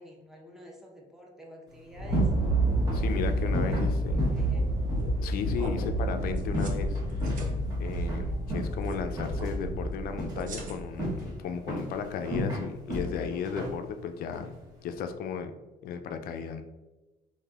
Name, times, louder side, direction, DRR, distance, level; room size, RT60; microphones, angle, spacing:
voice 1, 0.0-2.3 3.3-4.7, equal, 5° right, -1 dB, 0.7 m, -50 dB
sound 1, 1.7-15.1, equal, 25° right, 1.2 m, -36 dB
sound 2, 1.9-11.5, right 1 dB, 75° right, 1.4 m, -30 dB
voice 2, 2.9-4.5 5.2-7.3 7.8-14.5 14.8-15.5 15.8-16.6, left 7 dB, 60° left, 8 dB, 0.4 m, -35 dB
sound 3, 4.9-5.2 5.5-5.7 6.4-6.8 7.0-7.5 8.8-9.0 9.3-9.5 10.3-11.0, right 2 dB, 50° right, 0.7 m, -40 dB
3.2 x 2.6 x 2.3 m, 1.1 s
supercardioid pair, 75°, 17 cm